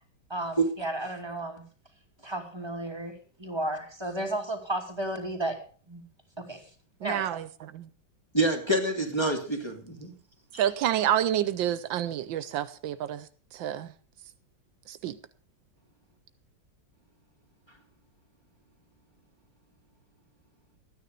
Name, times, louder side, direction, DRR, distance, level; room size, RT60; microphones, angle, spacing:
voice 1, 0.3-1.6 2.2-5.6 5.9-6.0 6.4-6.6 7.0-7.4, right 1 dB, 15° right, 2.6 m, -33 dB
voice 2, 7.0-7.9 10.6-13.3 13.5-13.9 14.9-15.2, right 11 dB, 80° right, 1.5 m, -28 dB
voice 3, 8.3-10.1 10.5-10.6, right 2 dB, 15° left, 2.6 m, -27 dB
13.5 x 9.7 x 5.2 m
omnidirectional pair, 2.0 m